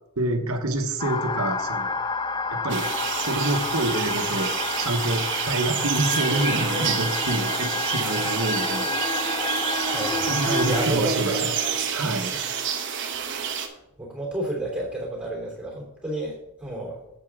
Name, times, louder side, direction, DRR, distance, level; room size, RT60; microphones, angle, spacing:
voice 1, 0.2-1.9 2.5-2.9 3.2-4.5 4.8-8.9 10.3-11.5 11.9-12.4, right 2 dB, 70° right, 6 dB, 1.2 m, -27 dB
sound 1, 1.0-10.9, left 4 dB, 20° left, 0.3 m, -30 dB
sound 2, 2.7-13.7, right 6 dB, 55° right, 1.0 m, -28 dB
voice 2, 9.8-10.3 10.6-11.7 12.3-12.5 13.2-13.5 14.0-17.0, right 1 dB, 5° right, -4 dB, 3.0 m, -31 dB
8.2 x 7.9 x 3.7 m, 0.89 s
head